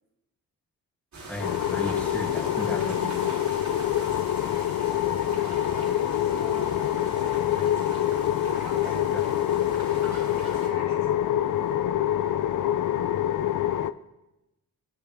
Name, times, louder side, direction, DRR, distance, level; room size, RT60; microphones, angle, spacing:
sound 1, 1.1-10.7, right 2 dB, 50° right, 3.7 m, -42 dB
voice 1, 1.3-3.2 8.8-9.3, equal, 5° left, -2 dB, 2.5 m, -36 dB
sound 2, 1.4-13.9, left 11 dB, 60° left, 0.6 m, -26 dB
voice 2, 5.3-7.7 8.1-9.0 9.6-10.0 10.4-11.8, right 3 dB, 75° right, -1 dB, 3.3 m, -45 dB
26.5 x 11.5 x 3.5 m, 0.97 s
wide cardioid pair, 180°, 35 cm